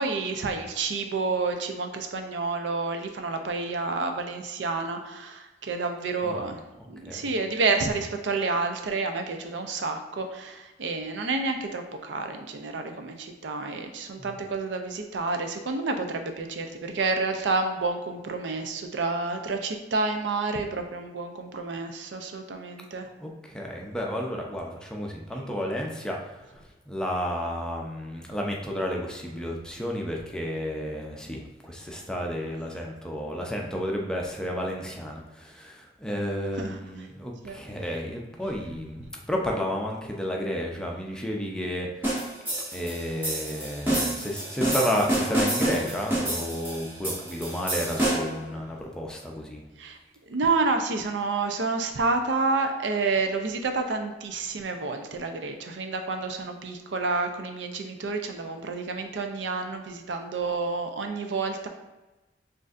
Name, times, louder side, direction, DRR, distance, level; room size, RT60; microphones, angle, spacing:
voice 1, 0.0-6.6 6.9-23.1 36.6-36.8 37.4-37.6 49.8-50.0 50.3-61.7, right 3 dB, 85° right, 6 dB, 0.5 m, -29 dB
voice 2, 23.2-26.6 26.9-42.2 42.7-49.6, equal, 5° left, -1 dB, 0.5 m, -32 dB
sound 1, 42.0-48.4, right 1 dB, 10° right, 1.2 m, -28 dB
6.2 x 2.6 x 2.5 m, 1.1 s
head